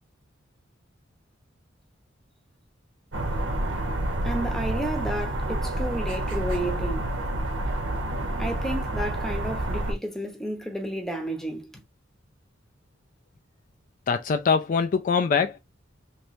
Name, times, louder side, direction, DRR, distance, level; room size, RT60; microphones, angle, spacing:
sound 1, 3.1-9.9, right 1 dB, 85° right, 1.0 m, -28 dB
voice 1, 4.2-7.1 8.4-11.8, right 1 dB, ahead, 0.8 m, -32 dB
voice 2, 14.1-15.6, left 5 dB, 45° left, 0.3 m, -23 dB
3.2 x 3.1 x 2.5 m
head